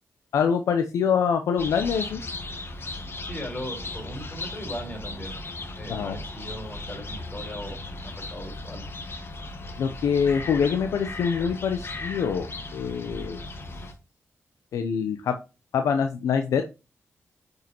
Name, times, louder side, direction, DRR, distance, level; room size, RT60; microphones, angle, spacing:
voice 1, 0.3-2.2 5.9-6.2 9.8-13.4 14.7-15.4 15.7-16.6, left 7 dB, 90° left, 7 dB, 0.6 m, -25 dB
sound 1, 1.6-13.9, left 2 dB, 50° left, 1.6 m, -37 dB
voice 2, 3.2-5.4 5.8-8.9, equal, 25° left, 2 dB, 4.0 m, -38 dB
9.1 x 5.4 x 2.9 m, 0.29 s
cardioid pair, 60°, 5 cm